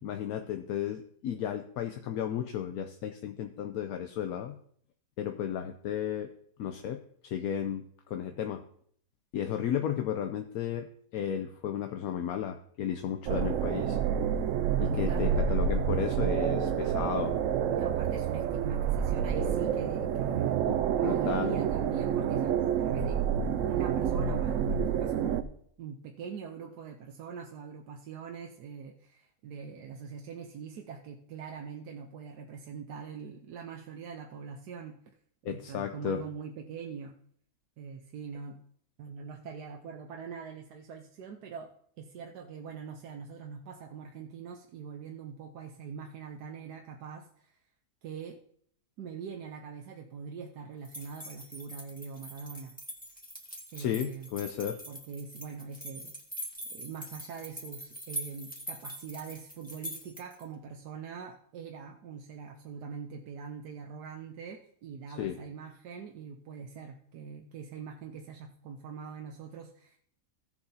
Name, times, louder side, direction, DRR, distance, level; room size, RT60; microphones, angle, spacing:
voice 1, 0.0-4.6 5.2-6.3 6.6-8.6 9.3-10.9 11.1-14.0 14.8-17.3 20.7-21.6 35.4-36.2 53.8-54.8 65.2-65.4, left 9 dB, 75° left, 6 dB, 1.1 m, -34 dB
sound 1, 13.3-25.4, right 8 dB, 65° right, 0.9 m, -28 dB
voice 2, 14.9-15.5 17.7-20.7 21.0-23.2 23.6-25.5 25.8-34.9 35.4-37.1 37.8-38.6 39.0-41.7 42.0-47.6 48.0-48.4 49.0-52.7 53.7-54.3 54.9-56.1 56.7-70.0, right 6 dB, 85° right, 2 dB, 1.4 m, -43 dB
sound 2, 50.8-60.4, equal, 5° left, 1.6 m, -43 dB
16.5 x 7.2 x 2.8 m, 0.63 s
omnidirectional pair, 1.7 m